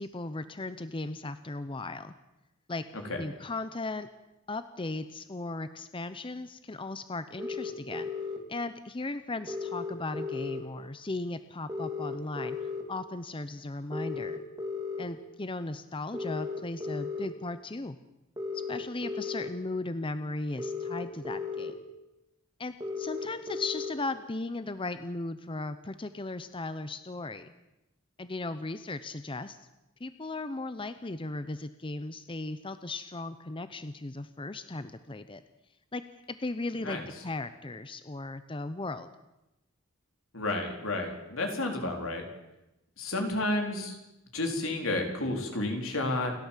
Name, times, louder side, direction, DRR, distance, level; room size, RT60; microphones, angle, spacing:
voice 1, 0.0-2.1 2.7-2.9 3.2-4.1 4.5-8.1 8.5-12.6 12.9-14.4 15.0-18.0 18.5-21.8 22.6-27.5 28.2-29.6 30.0-35.4 35.9-36.0 36.4-37.0 37.2-39.1, left 2 dB, 25° left, 11 dB, 0.7 m, -37 dB
sound 1, 7.4-8.4 9.5-10.6 11.7-12.8 13.9-15.0 16.1-17.3 18.4-19.5 20.6-21.7 22.8-23.9, left 4 dB, 15° right, 3.2 m, -35 dB
voice 2, 40.3-42.2 43.0-46.3, left 2 dB, 80° left, 3 dB, 4.3 m, -31 dB
29.0 x 13.0 x 7.5 m, 0.94 s
head